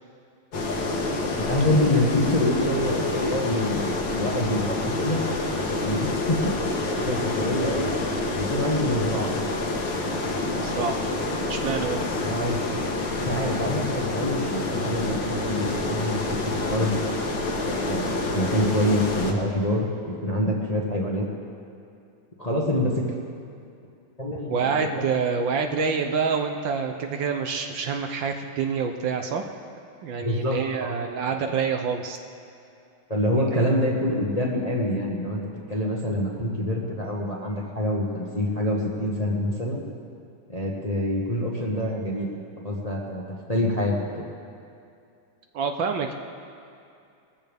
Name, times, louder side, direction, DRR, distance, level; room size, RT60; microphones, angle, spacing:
sound 1, 0.5-19.3, left 2 dB, 60° left, 1.9 m, -28 dB
voice 1, 1.4-5.2 5.8-6.6 7.0-8.0 8.4-9.4 12.2-12.6 13.1-16.2 16.4-17.0 17.8-21.2 22.4-23.0 24.2-25.0 30.2-30.9 31.5-31.6 33.1-35.4 35.7-39.8 40.5-42.3 42.6-43.2 43.5-43.9, left 1 dB, 25° left, -3 dB, 1.0 m, -26 dB
voice 2, 10.5-11.0 11.5-12.0 24.5-29.4 30.0-32.2 33.5-33.7 45.5-46.1, right 5 dB, 70° right, 5 dB, 1.4 m, -27 dB
21.0 x 14.5 x 3.5 m, 2.5 s
omnidirectional pair, 2.4 m